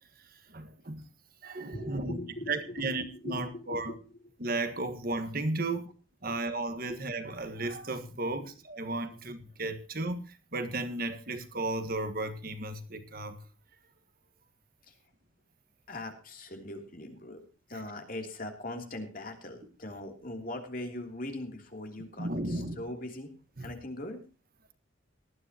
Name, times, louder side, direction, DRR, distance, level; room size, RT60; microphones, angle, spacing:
voice 1, 0.5-1.0 1.4-2.2 2.5-3.9 4.4-5.8 6.2-8.4 8.7-10.2 10.5-13.4 22.2-22.8 23.6-23.7, right 2 dB, 45° right, 1.6 m, -34 dB
voice 2, 1.7-4.3 4.9-5.0 5.6-5.8 6.2-6.4 6.9-7.0 8.4-8.5 14.8-15.0 15.9-17.4 17.7-23.3 23.6-24.2, left 1 dB, 45° left, 3.1 m, -41 dB
19.0 x 13.0 x 2.9 m
head